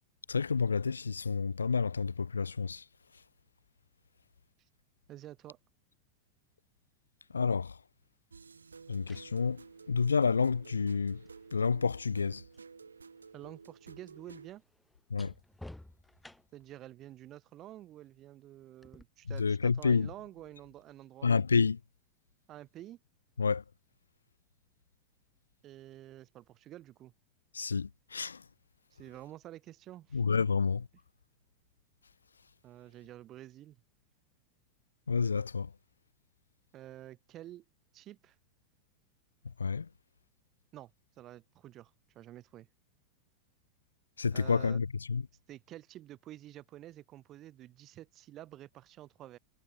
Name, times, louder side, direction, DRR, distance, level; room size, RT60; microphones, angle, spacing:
voice 1, 0.3-2.8 7.3-7.7 8.9-9.6 9.9-11.2 11.5-12.4 15.1-15.3 19.4-20.1 21.2-21.8 23.4-23.6 27.5-28.4 30.1-30.9 35.1-35.7 39.6-39.9 44.2-45.2, left 5 dB, 75° left, 1.2 m, -29 dB
voice 2, 5.1-5.6 13.3-14.6 16.5-21.3 22.5-23.0 25.6-27.1 28.9-30.2 32.6-33.8 36.7-37.6 37.9-38.4 40.7-40.9 41.2-42.7 44.3-44.8 45.5-49.4, right 13 dB, 35° right, 7.6 m, -49 dB
sound 1, 8.3-14.5, right 5 dB, 75° right, 7.6 m, -52 dB
sound 2, 8.7-12.7 13.0-16.8 18.8-19.0, left 1 dB, 5° left, 6.9 m, -56 dB
figure-of-eight pair, 90°, 0 cm